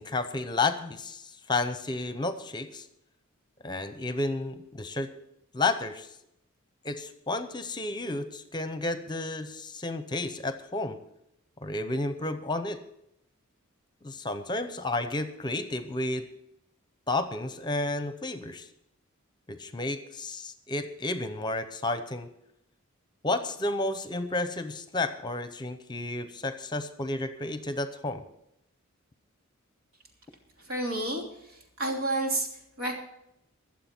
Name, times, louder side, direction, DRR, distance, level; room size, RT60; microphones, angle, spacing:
voice 1, 0.0-2.9 3.6-5.1 5.5-6.1 6.8-11.0 11.6-12.8 14.0-16.3 17.1-18.7 19.5-22.3 23.2-28.2, left 2 dB, 20° left, 10 dB, 0.7 m, -31 dB
voice 2, 30.6-33.0, right 1 dB, 75° right, 1 dB, 3.0 m, -31 dB
22.0 x 7.6 x 4.4 m, 0.79 s
head